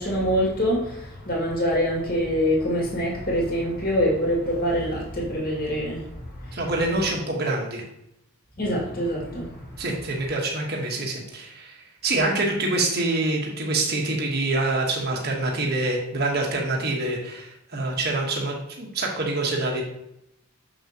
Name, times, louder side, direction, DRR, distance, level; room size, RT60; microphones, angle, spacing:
voice 1, 0.0-6.1 6.4-6.6 8.6-9.7, equal, 40° left, -4 dB, 2.2 m, -25 dB
voice 2, 6.5-7.8 9.8-19.8, right 2 dB, 45° right, -1 dB, 1.2 m, -26 dB
6.8 x 5.9 x 2.9 m, 0.81 s
head